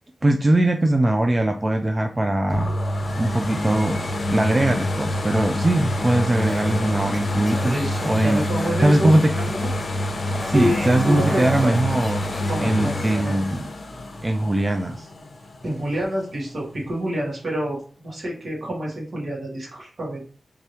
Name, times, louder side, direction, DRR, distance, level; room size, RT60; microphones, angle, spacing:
voice 1, 0.2-2.7 3.1-4.0 4.3-8.4 8.8-9.3 10.5-12.3 12.6-13.7 14.2-15.1, right 1 dB, 25° right, 5 dB, 0.3 m, -21 dB
sound 1, 2.5-16.2 16.7-16.8, left 1 dB, 55° left, 0.8 m, -27 dB
sound 2, 6.4-9.9 10.3-13.2, left 1 dB, 25° left, 1.1 m, -36 dB
voice 2, 7.6-9.7 10.5-11.7 12.5-13.3 15.6-20.2, equal, 60° right, -4 dB, 2.0 m, -28 dB
3.5 x 3.4 x 2.9 m, 0.41 s
wide cardioid pair, 90°, 0 cm